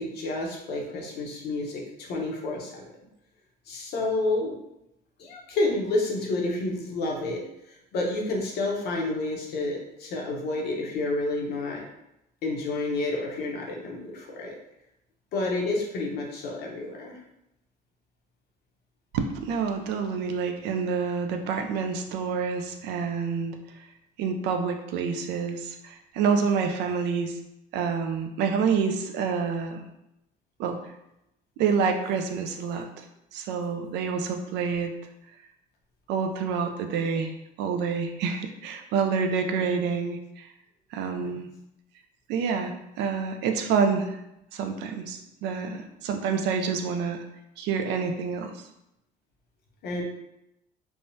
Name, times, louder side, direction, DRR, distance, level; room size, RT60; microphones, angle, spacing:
voice 1, 0.0-2.8 3.7-4.5 5.2-7.4 7.9-11.8 12.4-14.6 15.3-17.2 41.2-41.3 49.8-50.0, left 2 dB, 70° left, -1 dB, 0.8 m, -29 dB
voice 2, 19.1-23.9 24.2-27.4 27.7-29.8 30.6-30.8 31.6-33.1 33.3-34.9 36.1-37.3 37.6-40.5 40.9-41.5 42.3-44.2 44.5-47.2 47.6-48.7, right 5 dB, 85° right, 5 dB, 0.4 m, -28 dB
3.5 x 2.1 x 2.6 m, 0.86 s
cardioid pair, 110°, 17 cm